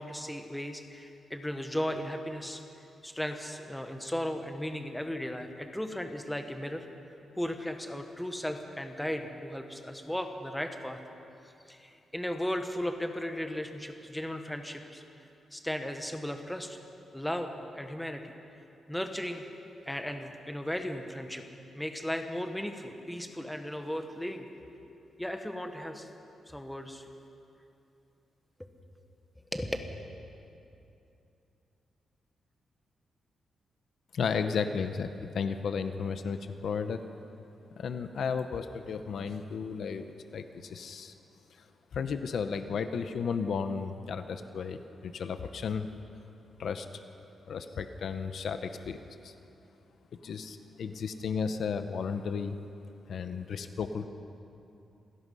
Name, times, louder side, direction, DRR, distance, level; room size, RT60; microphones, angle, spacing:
voice 1, 0.0-2.6 3.0-6.9 7.3-11.0 11.7-15.0 15.5-16.8 17.1-18.3 18.9-19.4 19.9-21.4 21.7-24.5 25.2-26.1 26.5-27.1 29.5-29.8, equal, 5° left, 5 dB, 1.2 m, -36 dB
voice 2, 34.1-37.1 37.8-40.0 40.3-41.1 41.9-45.9 46.6-46.9 47.5-49.0 49.2-49.3 50.2-52.6 53.1-54.0, left 6 dB, 60° left, 9 dB, 0.9 m, -33 dB
27.0 x 17.5 x 5.5 m, 2.7 s
wide cardioid pair, 165°, 0 cm